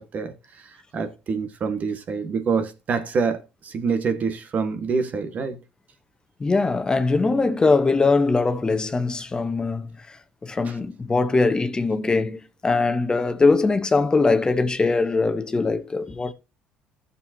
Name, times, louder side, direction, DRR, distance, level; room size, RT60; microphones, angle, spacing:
voice 1, 0.0-5.6 10.6-10.7, right 5 dB, 50° right, 1.6 m, -26 dB
voice 2, 6.4-10.2 10.4-16.3, left 3 dB, 25° left, 1.1 m, -21 dB
15.5 x 7.0 x 2.8 m
supercardioid pair, 75°, 3 cm